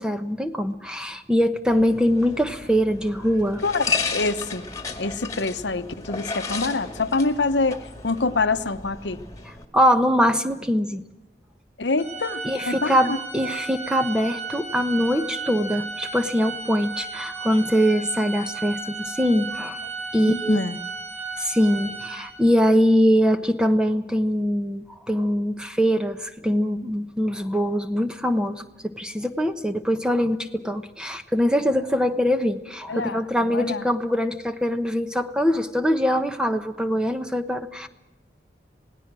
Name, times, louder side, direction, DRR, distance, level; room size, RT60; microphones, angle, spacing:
voice 1, 0.0-3.6 9.7-11.0 12.4-19.8 20.1-20.6 21.4-37.9, equal, 5° right, 8 dB, 1.0 m, -23 dB
sound 1, 1.7-9.6, left 4 dB, 20° left, 2.1 m, -33 dB
voice 2, 3.6-4.6 5.0-9.2 11.8-13.2 20.2-20.8 32.9-33.8, left 3 dB, 85° left, 10 dB, 1.0 m, -26 dB
Organ, 12.0-22.6, right 4 dB, 35° right, 5.0 m, -34 dB
27.5 x 18.0 x 6.2 m, 0.98 s
head